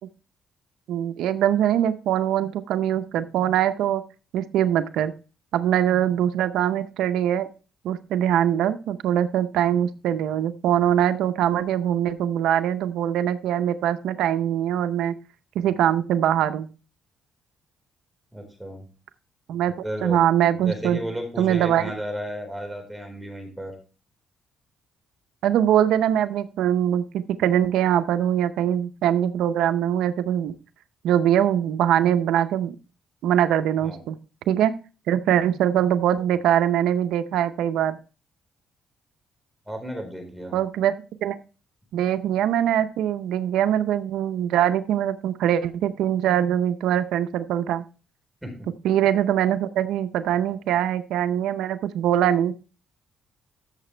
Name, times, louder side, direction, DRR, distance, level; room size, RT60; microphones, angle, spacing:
voice 1, 0.9-4.0 4.3-5.1 5.5-7.5 7.8-15.1 15.6-16.7 19.5-19.7 20.0-21.0 21.4-21.9 25.4-30.5 31.0-32.7 33.2-34.2 34.5-34.7 35.1-38.0 40.5-40.9 41.2-41.4 41.9-47.8 48.8-52.5, right 10 dB, 85° right, 10 dB, 0.6 m, -22 dB
voice 2, 18.3-18.8 19.8-20.2 20.5-23.7 33.8-34.0 39.7-40.6 48.4-48.5 50.4-50.6, equal, 5° right, 3 dB, 4.3 m, -33 dB
13.0 x 6.7 x 3.2 m, 0.34 s
cardioid pair, 90°, 0 cm